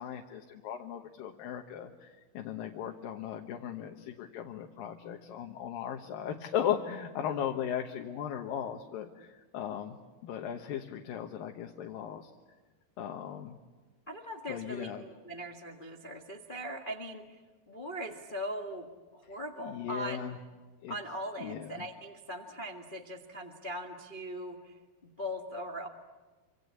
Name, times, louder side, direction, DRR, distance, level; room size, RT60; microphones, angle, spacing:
voice 1, 0.0-10.0 10.2-12.3 13.0-13.6 14.5-15.0 19.3-20.4 20.8-21.0 21.4-21.9, left 9 dB, 85° left, 3 dB, 3.0 m, -37 dB
voice 2, 14.1-17.4 17.7-20.3 20.9-24.8 25.2-25.9, equal, 45° left, 4 dB, 0.6 m, -40 dB
27.5 x 26.0 x 8.4 m, 1.3 s
omnidirectional pair, 3.9 m